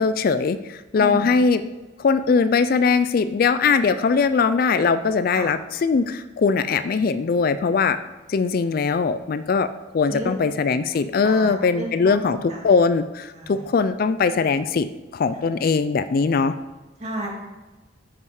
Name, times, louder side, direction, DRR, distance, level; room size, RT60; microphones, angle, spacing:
voice 1, 0.0-1.6 2.0-8.0 8.3-9.7 9.9-12.4 12.6-14.9 15.1-16.6, left 5 dB, 45° left, 12 dB, 0.3 m, -20 dB
voice 2, 0.9-1.3 5.3-5.5 10.1-10.3 10.7-10.8 11.2-12.6 13.4-13.6 15.3-15.5 17.0-17.3, right 1 dB, 35° right, -4 dB, 2.4 m, -33 dB
9.4 x 5.6 x 4.8 m, 1.1 s
head